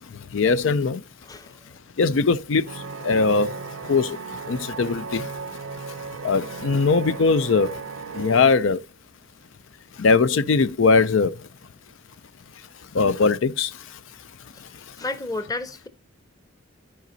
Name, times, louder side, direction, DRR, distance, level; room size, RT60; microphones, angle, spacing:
voice 1, 0.0-1.0 2.0-5.3 5.7-5.9 6.2-8.8 9.9-11.5 12.5-14.3 14.6-15.0, left 4 dB, 70° left, 0.5 m, -22 dB
voice 2, 1.2-1.6 14.5-14.6 15.0-15.9, left 2 dB, 15° left, 0.9 m, -31 dB
sound 1, 2.7-8.4, right 5 dB, 85° right, 0.5 m, -36 dB
13.5 x 5.1 x 2.7 m
head